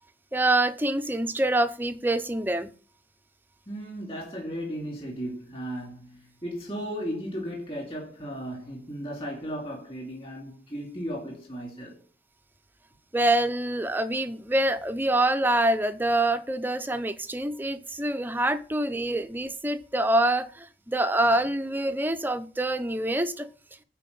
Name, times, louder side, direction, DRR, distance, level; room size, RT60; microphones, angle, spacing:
voice 1, 0.3-2.7 13.1-23.5, right 1 dB, 10° right, 0.5 m, -25 dB
voice 2, 3.7-12.0 19.1-19.2, equal, 30° left, 2.6 m, -35 dB
9.2 x 4.6 x 5.3 m
head